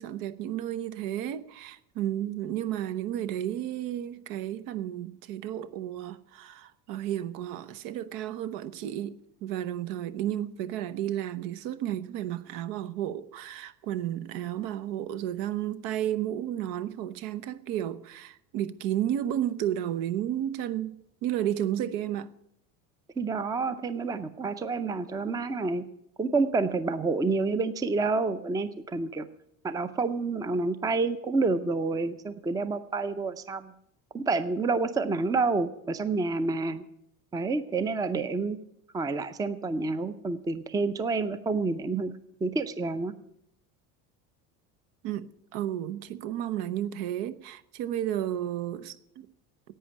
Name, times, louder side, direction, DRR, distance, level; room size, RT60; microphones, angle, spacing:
voice 1, 0.0-22.3 45.0-49.3, right 11 dB, 70° right, 0.9 m, -32 dB
voice 2, 23.2-25.9 26.2-29.3 29.6-33.7 34.1-36.8 37.3-38.6 38.9-42.1 42.4-43.1, right 3 dB, 10° right, 0.5 m, -28 dB
11.0 x 8.5 x 9.9 m
cardioid pair, 155°, 34 cm